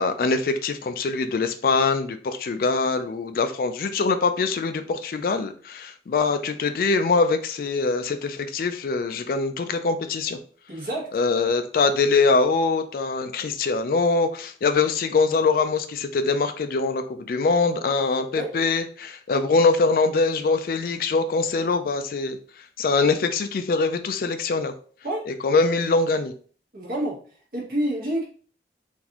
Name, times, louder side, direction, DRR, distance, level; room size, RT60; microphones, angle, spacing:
voice 1, 0.0-10.4 11.1-22.4 22.8-24.7 25.3-26.3, left 4 dB, 50° left, 9 dB, 0.3 m, -23 dB
voice 2, 10.7-11.1 18.3-18.5 25.0-25.3 26.7-27.2 27.5-28.3, right 1 dB, 50° right, -2 dB, 1.2 m, -28 dB
3.9 x 2.5 x 2.9 m, 0.43 s
head